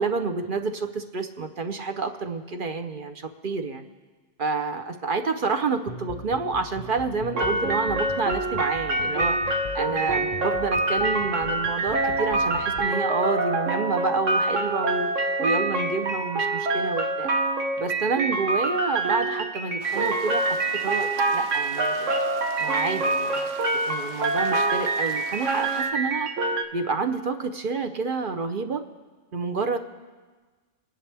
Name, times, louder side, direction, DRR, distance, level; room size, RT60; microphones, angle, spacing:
voice 1, 0.0-3.8 4.4-15.1 15.4-17.3 17.8-22.1 22.6-23.5 23.9-26.3 26.7-28.8 29.3-29.8, right 4 dB, 50° right, 7 dB, 0.9 m, -29 dB
sound 1, 5.9-12.9, left 5 dB, 50° left, 0.6 m, -41 dB
sound 2, 7.3-26.6, right 2 dB, 85° right, 1.4 m, -26 dB
sound 3, 19.8-25.9, right 5 dB, 70° right, 1.1 m, -43 dB
25.0 x 10.5 x 3.4 m, 1.4 s
omnidirectional pair, 1.2 m